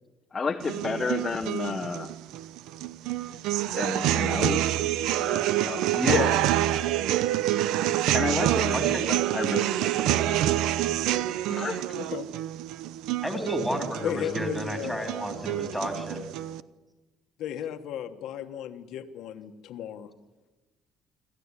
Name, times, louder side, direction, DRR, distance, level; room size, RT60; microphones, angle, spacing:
voice 1, 0.3-2.1 3.8-4.6 5.2-6.1 8.1-10.4 11.5-12.1, left 4 dB, 20° left, 3 dB, 0.9 m, -32 dB
sound 1, 0.6-16.6, right 13 dB, 90° right, 0.7 m, -27 dB
voice 2, 5.9-6.3 8.7-9.0 13.2-16.2, equal, ahead, 4 dB, 3.2 m, -31 dB
voice 3, 12.0-12.3 14.0-15.1 17.4-20.1, left 10 dB, 65° left, 6 dB, 1.2 m, -33 dB
26.0 x 14.5 x 9.7 m, 1.2 s
cardioid pair, 180°, 0 cm